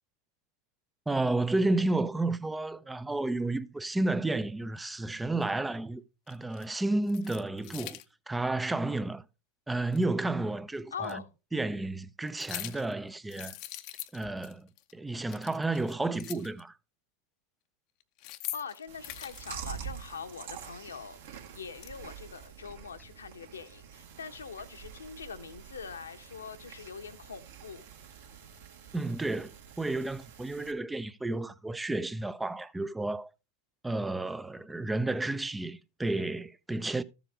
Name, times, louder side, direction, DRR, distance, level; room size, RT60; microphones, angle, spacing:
voice 1, 1.1-8.0 8.3-9.2 9.7-11.2 11.5-13.5 14.1-16.7 28.9-33.3 33.8-37.0, right 2 dB, 5° right, 0.5 m, -31 dB
sound 1, 5.4-5.5 6.3-6.7 7.0-8.1 9.9-10.0 11.0-11.1 12.3-12.9 13.3-14.5 14.8-14.9 15.2-16.6 18.0-19.6 21.2-21.9, left 15 dB, 45° left, 0.7 m, -43 dB
voice 2, 10.9-11.3 18.5-27.9, left 6 dB, 70° left, 1.0 m, -43 dB
Chewing mastication, 18.9-30.7, right 8 dB, 60° right, 1.7 m, -47 dB
14.0 x 7.1 x 3.4 m
figure-of-eight pair, 90°, 0 cm